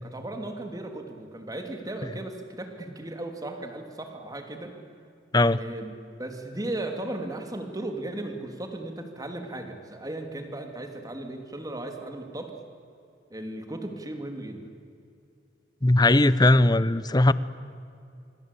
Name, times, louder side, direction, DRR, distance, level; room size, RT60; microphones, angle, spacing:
voice 1, 0.0-4.7 5.6-5.9 6.2-12.5 13.3-14.7, right 1 dB, 20° right, 5 dB, 3.0 m, -36 dB
voice 2, 15.8-17.3, left 2 dB, 20° left, 17 dB, 0.8 m, -19 dB
26.5 x 24.5 x 8.5 m, 2.5 s
head